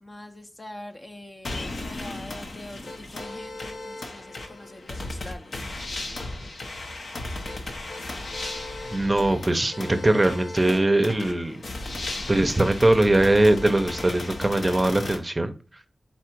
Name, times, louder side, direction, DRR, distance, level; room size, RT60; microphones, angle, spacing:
voice 1, 0.0-5.6, left 1 dB, 35° left, 0.6 m, -43 dB
sound 1, 1.4-15.2, left 2 dB, 75° left, 0.8 m, -35 dB
voice 2, 8.9-11.6 12.3-15.5, right 1 dB, 30° right, 0.6 m, -21 dB
4.2 x 2.4 x 4.5 m
cardioid pair, 55°, 0 cm